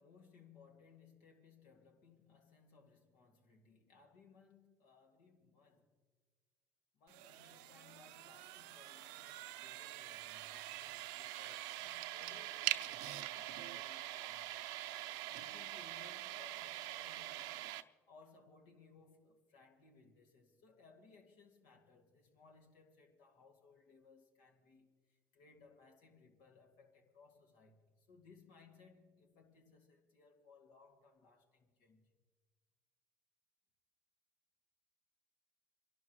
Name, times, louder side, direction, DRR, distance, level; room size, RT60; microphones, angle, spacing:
voice 1, 0.0-5.9 6.9-14.6 15.3-17.8 18.1-32.1, left 4 dB, 85° left, 2.1 m, -64 dB
sound 1, 7.1-17.8, right 15 dB, 85° right, 0.6 m, -44 dB
28.5 x 12.0 x 3.1 m
supercardioid pair, 95°, 7 cm